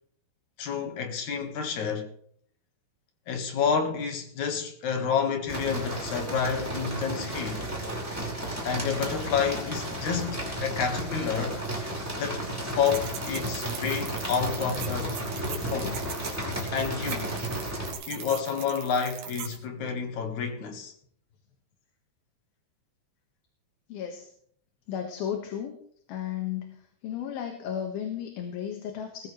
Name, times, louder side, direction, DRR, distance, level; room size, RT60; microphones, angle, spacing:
voice 1, 0.6-2.1 3.3-7.7 8.6-11.6 12.2-15.2 15.4-16.0 16.7-17.4 18.1-20.9, left 6 dB, 60° left, 2.8 m, -29 dB
sound 1, 5.5-17.9, right 1 dB, 5° right, 5.0 m, -33 dB
sound 2, 12.9-19.6, right 9 dB, 85° right, 3.4 m, -41 dB
voice 2, 23.9-24.3 24.9-25.7 26.1-26.8 27.0-29.3, left 9 dB, 80° left, 3.5 m, -34 dB
20.5 x 14.5 x 3.3 m
omnidirectional pair, 4.3 m